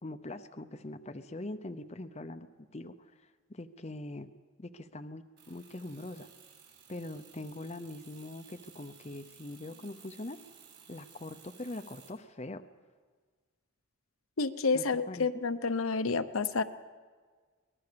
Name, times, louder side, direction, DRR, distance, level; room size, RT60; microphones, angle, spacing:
voice 1, 0.0-2.5 2.7-4.3 4.6-6.3 6.9-10.4 10.9-12.6 14.7-15.4, left 1 dB, 30° left, 9 dB, 0.7 m, -42 dB
sound 1, 5.4-12.1, right 7 dB, 50° right, 5.0 m, -57 dB
voice 2, 14.4-16.6, left 4 dB, 75° left, 10 dB, 0.9 m, -29 dB
23.5 x 19.5 x 6.9 m, 1.5 s
head